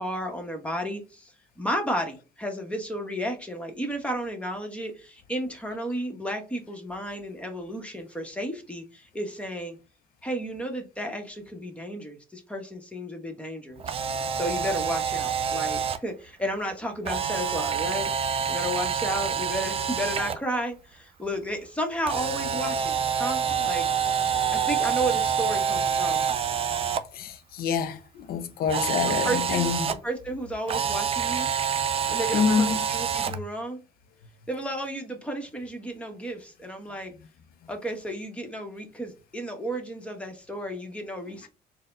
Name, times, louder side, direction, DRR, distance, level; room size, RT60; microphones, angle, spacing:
voice 1, 0.0-9.8 10.2-13.8 14.3-18.1 18.5-26.2 29.1-31.5 32.1-33.8 34.5-37.1 37.7-41.5, equal, 5° left, 1.1 m, -33 dB
Camera, 13.8-16.0 17.1-20.4 22.1-27.0 28.7-29.9 30.7-33.4, right 7 dB, 35° right, 0.5 m, -27 dB
voice 2, 27.1-29.9 32.3-32.9 33.3-33.4 41.4-41.5, left 6 dB, 60° left, 0.5 m, -27 dB
4.1 x 2.2 x 3.7 m
cardioid pair, 110°, 17 cm